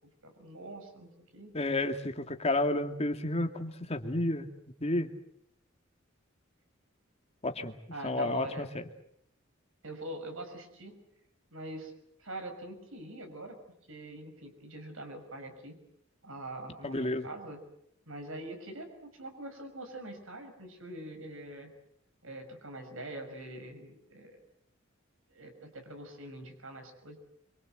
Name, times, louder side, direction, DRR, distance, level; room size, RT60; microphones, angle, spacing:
voice 1, 0.2-1.5 7.9-8.7 9.8-11.0 11.5-11.9 12.2-13.6 13.9-15.8 16.2-17.6 18.1-21.7 22.2-24.4 25.3-27.2, right 1 dB, 85° right, 5 dB, 5.9 m, -44 dB
voice 2, 1.5-4.5 4.8-5.1 7.4-7.7 8.0-8.7 16.8-17.3, left 2 dB, 30° left, 5 dB, 2.4 m, -31 dB
26.5 x 24.5 x 8.0 m, 0.73 s
head